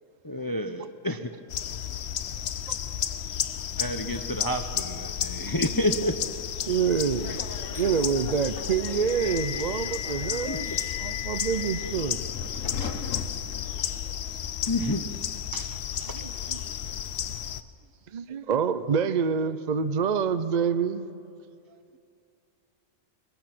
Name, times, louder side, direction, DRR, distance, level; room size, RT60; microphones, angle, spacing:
voice 1, 0.2-1.3 3.8-6.1 10.5-10.6 12.8-13.0 14.6-15.0 15.5-16.2, left 1 dB, 25° left, 7 dB, 0.6 m, -30 dB
sound 1, 1.5-17.6, left 9 dB, 60° left, 0.9 m, -33 dB
voice 2, 2.7-3.0 3.3-3.5 5.4-5.5 13.9-14.0 16.6-17.0 17.4-17.6 18.1-18.3 21.7-22.0, right 8 dB, 75° right, 10 dB, 1.4 m, -62 dB
Subway metro underground, 6.7-14.3, left 7 dB, 75° left, 1.5 m, -37 dB
voice 3, 6.7-7.4 7.8-12.2 16.1-16.6 18.1-21.1, right 6 dB, 45° right, 12 dB, 0.6 m, -27 dB
sound 2, 7.7-8.0 10.5-11.0 13.7-14.1, right 1 dB, 20° right, 2.4 m, -51 dB
22.0 x 21.5 x 6.0 m, 2.5 s
omnidirectional pair, 1.4 m